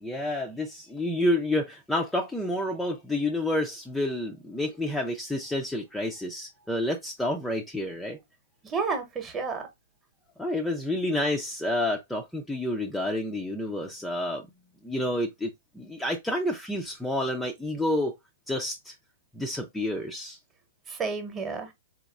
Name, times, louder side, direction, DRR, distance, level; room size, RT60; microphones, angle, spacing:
voice 1, 0.0-8.2 10.4-14.4 14.8-18.1 18.5-18.9 19.3-20.4, left 1 dB, 5° left, 0.5 m, -29 dB
voice 2, 8.6-9.7 20.9-21.7, right 4 dB, 20° right, 1.0 m, -31 dB
4.1 x 2.9 x 2.3 m
figure-of-eight pair, 110°, 0 cm